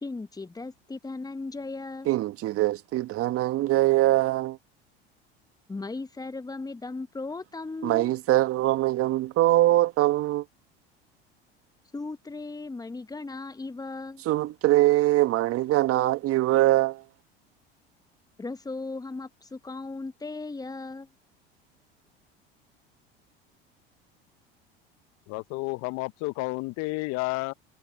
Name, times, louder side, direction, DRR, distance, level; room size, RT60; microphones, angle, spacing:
voice 1, 0.0-2.2 5.7-8.2 11.9-14.2 18.4-21.1, left 3 dB, 10° left, 1.4 m, -37 dB
voice 2, 2.1-4.6 7.8-10.4 14.2-17.0, right 16 dB, 50° right, 1.4 m, -23 dB
voice 3, 25.3-27.5, left 24 dB, 60° left, 1.2 m, -31 dB
hypercardioid pair, 75°, 30 cm